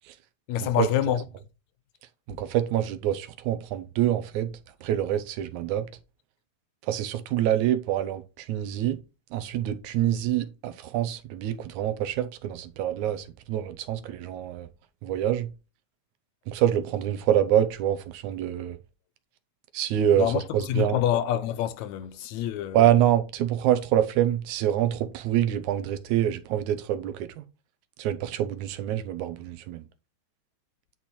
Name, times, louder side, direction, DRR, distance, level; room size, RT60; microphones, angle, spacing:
voice 1, 0.5-1.2 20.1-22.8, left 11 dB, 80° left, 1.8 m, -26 dB
voice 2, 2.3-4.5 4.8-5.9 6.9-9.0 9.3-14.7 15.0-15.5 16.5-18.8 19.7-21.0 22.7-27.3 28.0-29.8, right 11 dB, 80° right, 2.1 m, -26 dB
10.0 x 4.4 x 4.3 m
omnidirectional pair, 3.5 m